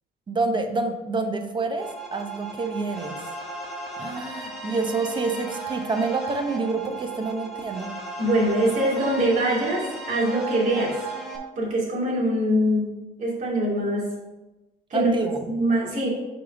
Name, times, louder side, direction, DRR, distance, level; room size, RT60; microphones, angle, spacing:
voice 1, 0.3-3.2 4.0-7.9 14.9-15.4, right 3 dB, 30° right, 5 dB, 0.9 m, -27 dB
sound 1, 1.8-11.4, right 2 dB, ahead, 1.6 m, -36 dB
voice 2, 8.2-10.9 11.6-12.9 13.2-14.1 14.9-15.1 15.5-16.1, right 1 dB, 50° right, -5 dB, 2.5 m, -23 dB
5.4 x 4.1 x 6.0 m, 1.1 s
cardioid pair, 110°, 17 cm